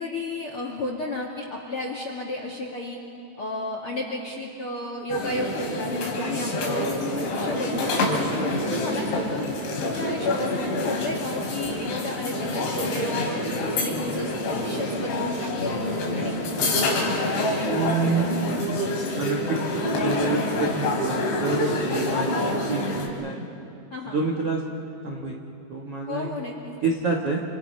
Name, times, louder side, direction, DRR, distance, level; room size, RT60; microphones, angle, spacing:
voice 1, 0.0-3.0 3.4-8.4 8.7-9.5 9.8-13.4 13.7-16.4 23.9-24.2 26.1-26.8, left 2 dB, 45° left, 0 dB, 1.9 m, -33 dB
sound 1, 5.1-23.1, left 1 dB, 90° left, 5.8 m, -27 dB
voice 2, 17.7-18.2 19.2-23.5 24.1-24.6 25.0-25.3 25.7-26.3 26.8-27.4, right 3 dB, 55° right, -1 dB, 1.7 m, -28 dB
29.5 x 28.0 x 5.6 m, 2.7 s
omnidirectional pair, 5.2 m